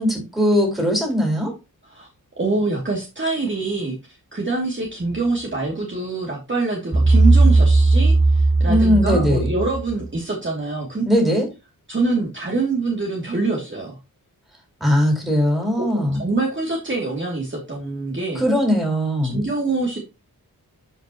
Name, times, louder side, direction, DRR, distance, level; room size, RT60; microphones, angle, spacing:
voice 1, 0.0-1.5 8.7-9.5 11.0-11.5 14.8-16.2 18.3-19.5, equal, ahead, 1 dB, 4.4 m, -19 dB
voice 2, 2.4-4.0 4.3-11.0 11.9-14.0 15.8-18.4 19.3-20.0, right 3 dB, 30° right, -2 dB, 2.6 m, -25 dB
sound 1, 6.9-10.0, right 3 dB, 15° right, 2.0 m, -16 dB
12.0 x 5.4 x 2.9 m, 0.26 s
wide cardioid pair, 115°, 37 cm